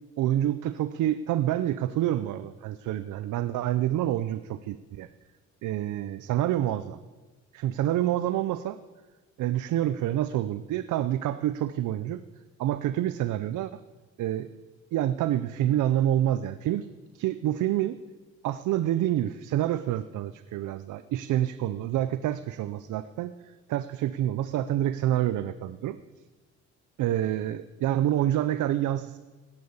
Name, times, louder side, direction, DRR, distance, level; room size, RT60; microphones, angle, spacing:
voice 1, 0.2-5.1 5.6-7.0 7.5-8.8 9.4-12.2 12.6-13.7 14.2-14.5 14.9-16.9 17.1-18.0 18.4-23.3 23.7-26.0 27.0-29.2, right 12 dB, 80° right, 12 dB, 0.7 m, -27 dB
16.5 x 10.5 x 7.1 m, 1.3 s
cardioid pair, 90°, 30 cm